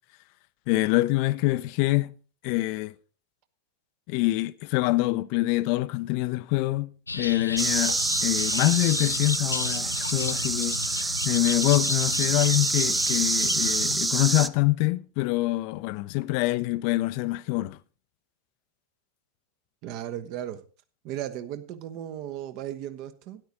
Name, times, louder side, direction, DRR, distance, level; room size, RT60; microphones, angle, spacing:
voice 1, 0.7-2.1 2.4-2.9 4.1-8.0 8.2-17.8, left 20 dB, 45° left, 0.6 m, -25 dB
sound 1, 7.1-14.0, left 3 dB, 80° left, 0.7 m, -34 dB
sound 2, 7.6-14.5, right 2 dB, 10° right, 0.5 m, -27 dB
voice 2, 19.8-20.6 21.0-23.4, right 11 dB, 40° right, 1.1 m, -36 dB
13.0 x 10.5 x 3.9 m
figure-of-eight pair, 90°, 0 cm